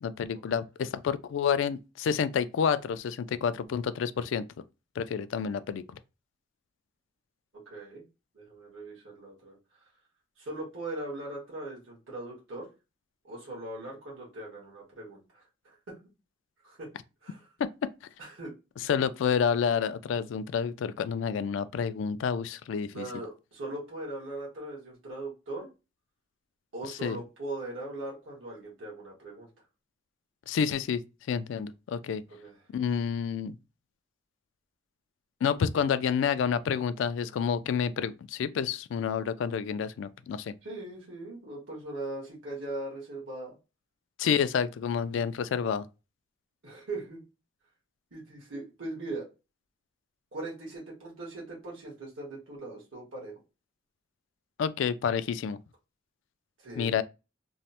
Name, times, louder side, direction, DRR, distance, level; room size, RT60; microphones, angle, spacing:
voice 1, 0.0-4.4 5.0-5.8 17.6-17.7 18.8-23.1 27.0-27.2 30.5-31.0 31.3-32.2 32.7-33.5 35.4-40.5 44.2-45.9 54.6-55.6 56.8-57.0, left 7 dB, 75° left, 0.3 m, -29 dB
voice 2, 7.6-8.0 8.3-9.6 10.4-12.7 13.2-16.0 16.6-16.9 17.2-17.5 18.2-18.5 22.9-25.7 26.7-29.5 32.3-32.6 40.6-43.5 44.2-44.4 46.6-47.2 48.1-49.3 50.3-53.3 56.6-57.0, right 2 dB, 85° right, 1.4 m, -40 dB
3.0 x 2.0 x 2.7 m
head